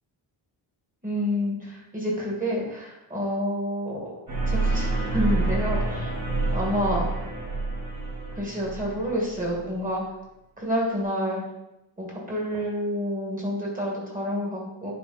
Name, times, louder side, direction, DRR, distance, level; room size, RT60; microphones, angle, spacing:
voice 1, 1.0-4.1 4.5-6.1 6.5-7.1 8.3-10.0 10.6-11.4 12.0-14.9, equal, 15° right, -3 dB, 2.1 m, -28 dB
sound 1, 4.3-9.6, right 3 dB, 40° right, 2.1 m, -27 dB
10.5 x 3.5 x 4.2 m, 0.93 s
wide cardioid pair, 130°, 46 cm